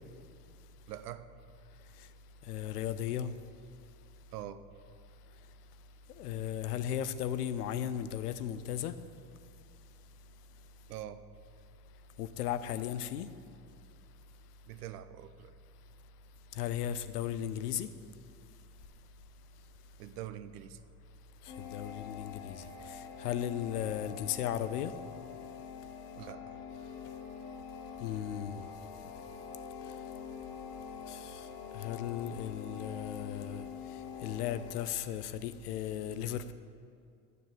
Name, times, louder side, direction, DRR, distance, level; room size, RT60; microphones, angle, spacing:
voice 1, 0.9-1.3 4.3-4.6 10.9-11.2 14.7-15.5 20.0-20.8 26.2-26.6, right 12 dB, 85° right, 0.6 m, -44 dB
voice 2, 2.5-3.3 6.2-8.9 12.2-13.3 16.6-17.9 21.6-24.9 28.0-28.6 31.1-31.5 31.7-33.7 34.2-36.5, left 10 dB, 90° left, 0.6 m, -36 dB
sound 1, 21.5-34.8, left 7 dB, 60° left, 1.5 m, -45 dB
6.8 x 6.7 x 7.5 m
hypercardioid pair, 75°, 45 cm